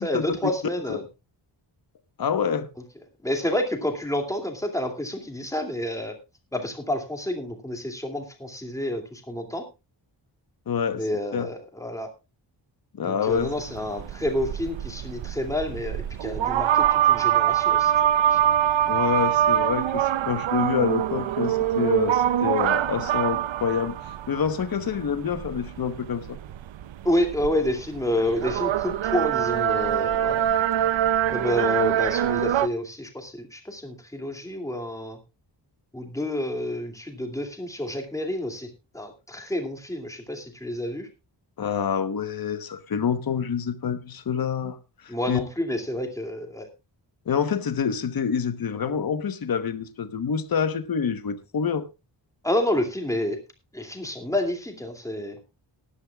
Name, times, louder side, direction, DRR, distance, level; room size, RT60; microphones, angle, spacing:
voice 1, 0.0-1.0 3.2-6.1 6.5-9.7 11.0-12.1 13.0-17.9 18.3-18.4 27.0-30.4 31.3-35.2 35.9-38.7 38.9-41.1 45.1-46.7 52.4-53.4 53.7-55.4, left 1 dB, 5° left, 2.5 m, -29 dB
voice 2, 2.2-2.7 10.7-11.0 11.3-11.5 12.9-13.5 18.9-23.9 24.3-26.4 41.6-44.8 45.0-45.4 47.3-51.8, left 7 dB, 50° left, 1.1 m, -27 dB
sound 1, 13.3-32.7, right 11 dB, 90° right, 0.7 m, -24 dB
18.5 x 11.5 x 2.3 m
wide cardioid pair, 165°, 45 cm